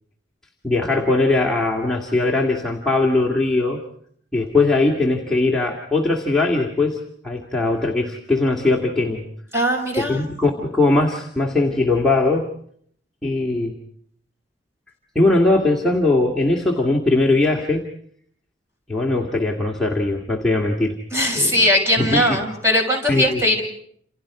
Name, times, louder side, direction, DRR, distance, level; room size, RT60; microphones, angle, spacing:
voice 1, 0.6-3.8 4.3-9.2 10.0-12.5 13.2-13.8 15.2-17.8 18.9-21.0 21.3-21.6 22.0-22.4 23.1-23.4, left 2 dB, 5° left, -2 dB, 2.1 m, -20 dB
voice 2, 9.5-10.2 21.1-23.6, left 1 dB, 15° right, 1 dB, 6.2 m, -19 dB
29.0 x 28.5 x 4.9 m, 0.64 s
head